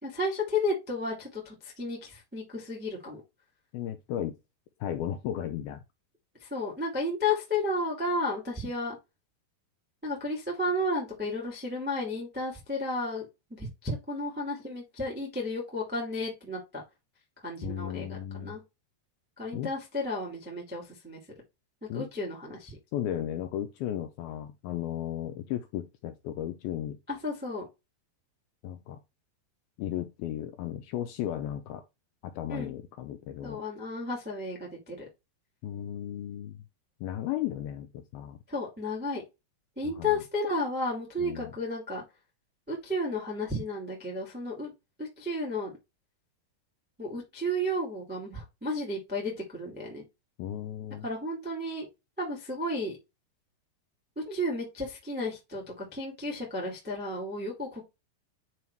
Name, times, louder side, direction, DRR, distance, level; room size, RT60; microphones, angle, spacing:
voice 1, 0.0-3.2 6.4-9.0 10.0-16.8 17.4-18.6 19.4-21.2 21.9-22.8 27.1-27.7 32.5-32.7 33.4-35.0 38.5-39.2 39.7-42.0 42.7-44.7 45.0-45.7 47.0-50.0 51.0-51.9 52.2-53.0 54.1-57.8, left 1 dB, 15° right, 0.4 m, -33 dB
voice 2, 3.7-4.4 4.8-5.8 17.6-18.6 19.5-19.7 21.9-22.1 22.9-27.0 28.6-29.0 29.8-31.8 32.2-33.6 35.6-36.6 37.0-38.4 39.8-40.2 41.2-41.5 50.4-51.0, left 11 dB, 85° left, 2.2 m, -35 dB
9.3 x 3.2 x 4.6 m
omnidirectional pair, 4.9 m